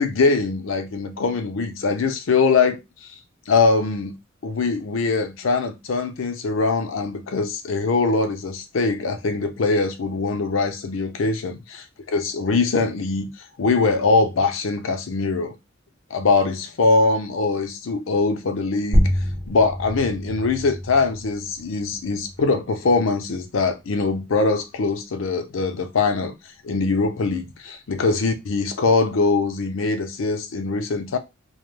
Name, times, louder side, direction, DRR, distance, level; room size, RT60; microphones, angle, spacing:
voice 1, 0.0-3.1 3.5-4.1 4.4-13.3 13.6-15.5 16.1-19.1 19.5-26.3 26.6-31.2, left 4 dB, 75° left, 0.5 m, -22 dB
sound 1, 18.9-24.0, equal, 15° right, 0.6 m, -27 dB
2.4 x 2.2 x 3.2 m
head